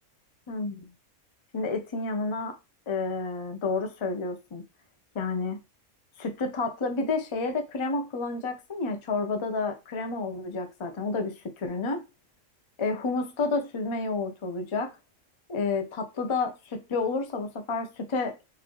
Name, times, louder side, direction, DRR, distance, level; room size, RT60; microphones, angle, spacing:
voice 1, 0.5-0.8 1.5-2.5 2.9-4.6 5.1-5.6 6.2-12.0 12.8-14.9 15.5-18.3, left 3 dB, 40° left, 0.4 m, -30 dB
3.9 x 2.6 x 3.0 m
omnidirectional pair, 1.5 m